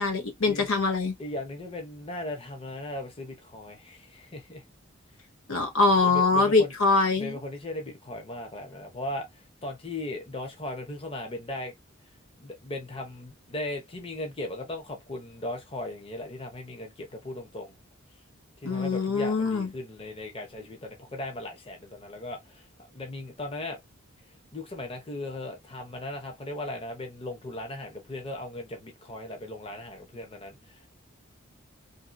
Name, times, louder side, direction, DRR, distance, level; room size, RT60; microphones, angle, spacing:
voice 1, 0.0-1.1 5.5-7.4 18.6-19.7, left 3 dB, 80° left, 1.1 m, -23 dB
voice 2, 1.2-4.6 6.0-6.7 7.2-11.7 12.4-17.7 18.6-22.7 22.9-23.8 24.5-30.9, left 1 dB, 25° left, 0.7 m, -37 dB
2.7 x 2.7 x 2.6 m
head